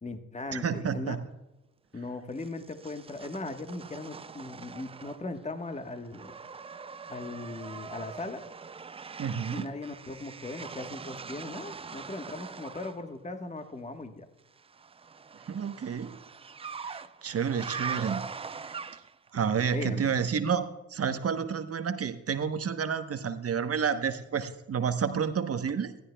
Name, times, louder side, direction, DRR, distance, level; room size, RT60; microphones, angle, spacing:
voice 1, 0.0-1.2 1.9-6.4 7.1-8.5 9.5-14.3 19.7-20.1, left 2 dB, 20° left, 7 dB, 1.3 m, -38 dB
voice 2, 0.5-1.2 9.2-9.7 15.5-16.1 16.8-18.2 18.6-18.8 19.3-25.9, right 7 dB, 40° right, 9 dB, 1.0 m, -30 dB
sound 1, 2.4-5.4 5.7-13.0 14.6-19.3, right 5 dB, 15° right, 0.4 m, -42 dB
20.0 x 14.0 x 2.3 m, 1.0 s
hypercardioid pair, 50°, 37 cm